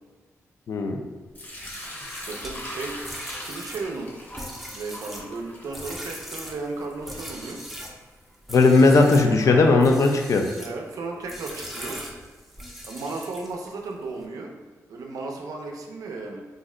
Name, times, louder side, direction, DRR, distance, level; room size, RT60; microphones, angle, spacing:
voice 1, 0.7-1.0 8.5-10.4, left 3 dB, 60° left, 3 dB, 0.4 m, -17 dB
Sink (filling or washing) / Liquid, 1.3-8.3, left 1 dB, 30° left, 0.7 m, -41 dB
sound 1, 1.5-8.0 8.4-9.3 9.8-10.8 11.3-13.7, equal, 5° right, 0.5 m, -40 dB
voice 2, 2.2-4.1 4.7-7.6 9.2-10.0 10.6-12.0 12.8-14.6 14.9-16.4, right 3 dB, 85° right, 2 dB, 0.5 m, -35 dB
2.6 x 2.1 x 3.6 m, 1.4 s
cardioid pair, 95°, 6 cm